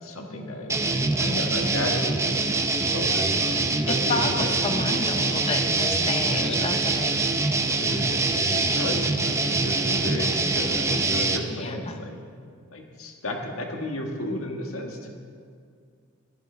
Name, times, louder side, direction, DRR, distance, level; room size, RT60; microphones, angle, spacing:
voice 1, 0.0-4.5 5.2-5.4 6.2-6.7 7.8-12.2 12.7-15.1, left 1 dB, 75° left, 2 dB, 1.5 m, -33 dB
sound 1, 0.7-11.4, right 3 dB, 15° right, 0.5 m, -24 dB
voice 2, 3.9-7.2 11.5-12.0, left 3 dB, 30° left, 6 dB, 0.7 m, -31 dB
14.5 x 12.0 x 3.4 m, 2.1 s
head